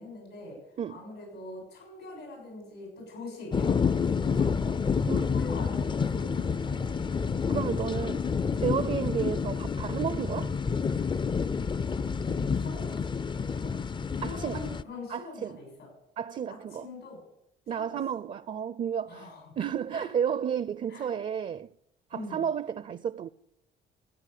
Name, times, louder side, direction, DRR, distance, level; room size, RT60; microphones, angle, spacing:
voice 1, 0.0-4.9 5.2-7.1 8.9-9.0 12.2-13.2 13.5-13.8 14.2-15.9 16.5-17.2 17.7-18.0 19.0-19.6 19.9-20.1 20.9-21.1 22.1-22.4, left 2 dB, 85° left, 6.5 m, -43 dB
sound 1, 3.5-14.8, left 5 dB, 25° left, 0.4 m, -29 dB
voice 2, 7.5-8.2 8.6-10.5 14.2-14.7 15.1-15.6 16.2-16.9 17.7-21.7 22.1-23.3, right 8 dB, 40° right, 0.4 m, -32 dB
15.0 x 8.1 x 6.7 m
cardioid pair, 90°, 20 cm